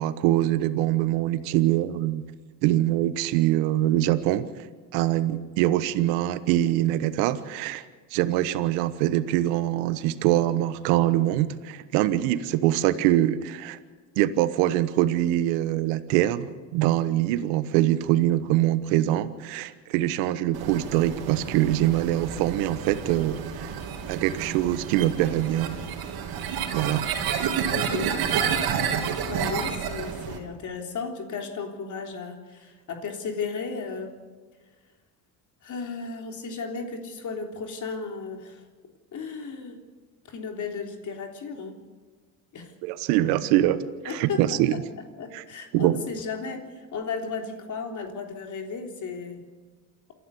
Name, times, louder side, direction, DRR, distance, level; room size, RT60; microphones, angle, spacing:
voice 1, 0.0-2.3 2.6-4.5 4.9-7.8 8.1-13.8 14.2-23.7 24.1-25.7 26.7-27.1 42.8-44.7 45.3-45.4 45.7-46.0, right 14 dB, 85° right, 13 dB, 1.1 m, -24 dB
sound 1, 20.5-30.4, right 7 dB, 65° right, 3.3 m, -30 dB
voice 2, 27.7-28.2 29.2-34.1 35.6-38.6 39.1-39.8 40.3-41.8 42.5-42.7 44.1-44.6 45.2-49.5, left 5 dB, 50° left, 3 dB, 3.6 m, -34 dB
28.0 x 11.5 x 8.3 m, 1.4 s
supercardioid pair, 85°, 39 cm